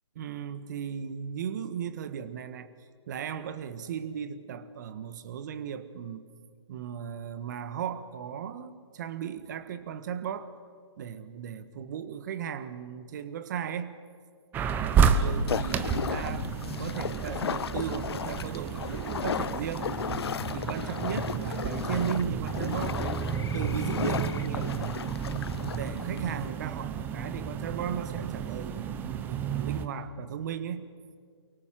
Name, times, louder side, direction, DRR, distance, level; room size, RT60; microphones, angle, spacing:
voice 1, 0.1-2.7 3.1-6.3 6.7-10.5 11.0-14.0 15.1-19.9 20.5-23.2 23.5-24.7 25.7-30.9, right 8 dB, 40° right, 13 dB, 1.5 m, -36 dB
sound 1, 14.5-29.9, right 7 dB, 15° right, 0.8 m, -31 dB
sound 2, 15.5-26.5, left 8 dB, 65° left, 0.5 m, -35 dB
24.0 x 23.0 x 7.6 m, 2.1 s
hypercardioid pair, 150°, 15 cm